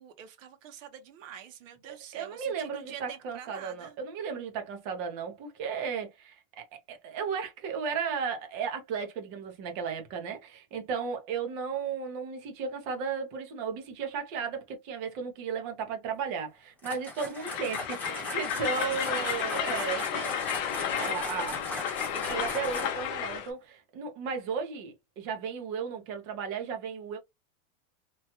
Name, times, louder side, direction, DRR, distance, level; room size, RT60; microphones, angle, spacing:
voice 1, 0.0-4.0 18.7-22.0, right 9 dB, 70° right, 1.1 m, -45 dB
voice 2, 1.8-20.0 21.0-21.6 22.1-27.2, right 6 dB, 35° right, 0.9 m, -35 dB
sound 1, 16.8-23.1, left 1 dB, 5° left, 1.0 m, -39 dB
Train, 17.4-23.5, left 9 dB, 35° left, 0.6 m, -32 dB
3.1 x 2.3 x 2.8 m
supercardioid pair, 170°, 39 cm